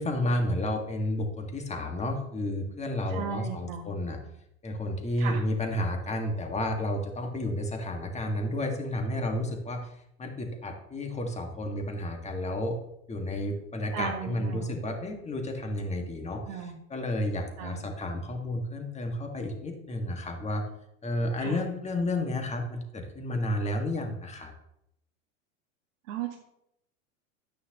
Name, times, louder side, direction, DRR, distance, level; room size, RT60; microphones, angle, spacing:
voice 1, 0.0-4.2 4.6-9.9 10.2-12.8 13.1-16.4 16.9-20.6 21.0-24.5, left 1 dB, 15° left, 3 dB, 1.9 m, -31 dB
voice 2, 3.1-3.9 5.2-5.4 13.9-14.8 16.4-16.8 17.6-17.8 21.4-21.6 26.0-26.4, right 7 dB, 65° right, -1 dB, 1.6 m, -36 dB
11.5 x 9.5 x 3.0 m, 0.80 s
hypercardioid pair, 105°, 41 cm